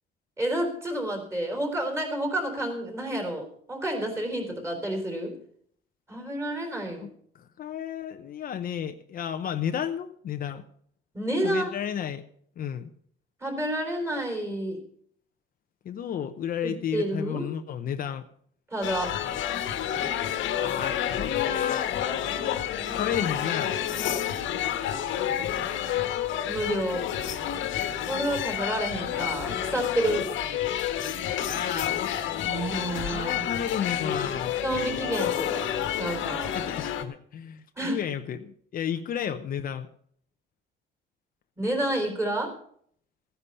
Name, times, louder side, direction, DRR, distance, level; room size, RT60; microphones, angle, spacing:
voice 1, 0.4-5.3 6.1-7.1 11.1-11.7 13.4-14.8 16.6-17.5 18.7-19.2 26.5-27.0 28.1-30.3 32.4-33.5 34.6-35.7 36.0-36.6 37.8-38.0 41.6-42.5, right 1 dB, 15° right, 4 dB, 3.8 m, -29 dB
voice 2, 7.3-10.6 11.4-12.2 12.6-12.9 15.8-18.3 20.6-21.9 22.9-23.8 31.4-35.1 36.5-39.9, left 8 dB, 45° left, 7 dB, 0.8 m, -33 dB
sound 1, 18.8-37.0, left 10 dB, 70° left, 1.6 m, -29 dB
15.0 x 10.0 x 5.5 m, 0.62 s
cardioid pair, 145°, 20 cm